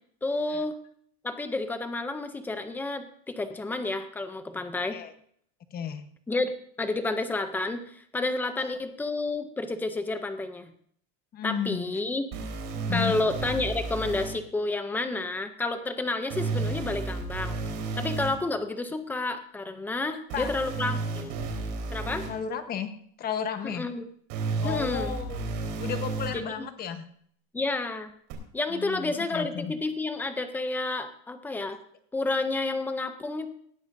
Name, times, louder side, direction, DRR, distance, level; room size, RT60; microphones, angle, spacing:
voice 1, 0.2-0.8 1.2-5.0 6.3-6.5 6.8-10.7 11.4-12.2 12.9-17.6 18.0-21.4 21.9-22.3 23.6-24.1 24.6-25.1 26.3-26.7 27.5-28.1 28.5-31.8 32.1-33.5, left 2 dB, 5° left, 9 dB, 0.4 m, -30 dB
voice 2, 5.7-6.0 8.6-8.7 11.3-11.9 12.9-13.2 20.0-20.5 22.2-23.9 24.6-25.5 25.8-27.0 28.7-29.7, left 8 dB, 25° left, 9 dB, 1.0 m, -33 dB
sound 1, 12.3-14.3 16.3-18.3 20.3-22.3 24.3-26.3 28.3-28.4, right 3 dB, 50° right, 3.9 m, -32 dB
19.0 x 13.5 x 2.6 m, 0.63 s
supercardioid pair, 170°, 40 cm